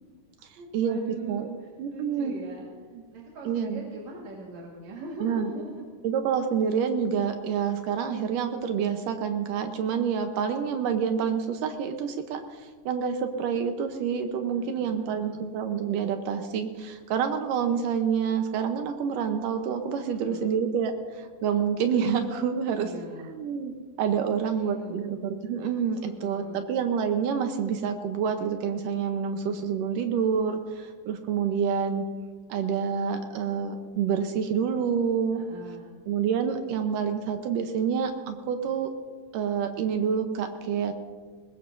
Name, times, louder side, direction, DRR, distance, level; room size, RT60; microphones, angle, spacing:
voice 1, 0.5-1.5 1.9-2.7 3.1-5.8 14.5-15.5 20.1-20.5 22.6-23.3 24.3-25.1 26.0-26.7 35.3-36.0, right 2 dB, 60° right, -3 dB, 2.9 m, -42 dB
voice 2, 1.8-2.4 3.5-3.8 5.2-5.5 6.0-12.4 12.9-22.9 23.3-23.7 24.0-32.0 32.5-35.4 36.1-38.9 39.3-40.9, right 7 dB, 75° right, 6 dB, 2.4 m, -27 dB
21.5 x 19.5 x 2.7 m, 1.5 s
omnidirectional pair, 3.9 m